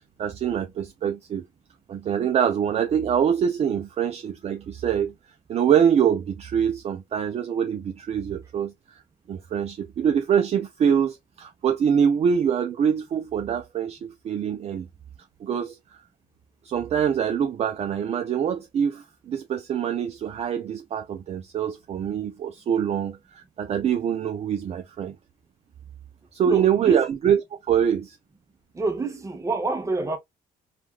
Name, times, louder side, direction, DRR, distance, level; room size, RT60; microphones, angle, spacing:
voice 1, 0.2-1.4 1.9-5.1 5.5-9.0 9.3-14.9 15.4-16.0 16.6-25.1 26.3-27.4 27.7-28.2, right 8 dB, 40° right, 0.4 m, -24 dB
voice 2, 26.4-27.0 28.7-30.2, right 3 dB, 20° right, 0.8 m, -27 dB
3.3 x 2.3 x 2.3 m
cardioid pair, 110°, 17 cm